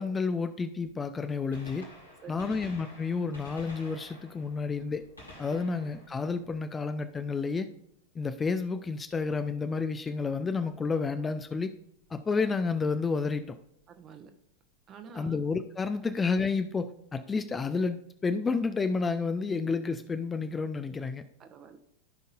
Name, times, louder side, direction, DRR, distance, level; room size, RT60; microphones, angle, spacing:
voice 1, 0.0-1.9 2.3-5.0 5.4-7.7 8.2-11.7 12.1-13.6 15.1-21.2, left 4 dB, 15° left, 9 dB, 0.5 m, -30 dB
Gunshot gunfire, 1.5-7.2 9.2-9.3 10.3-10.4 12.0-12.1 13.5-13.6 13.8-13.9, left 1 dB, 85° left, 3.0 m, -51 dB
voice 2, 2.2-2.6 5.5-5.8 13.9-14.3 14.9-15.4 21.4-21.8, right 6 dB, 30° right, 7 dB, 1.0 m, -48 dB
15.0 x 5.4 x 2.5 m, 0.76 s
figure-of-eight pair, 90°, 0 cm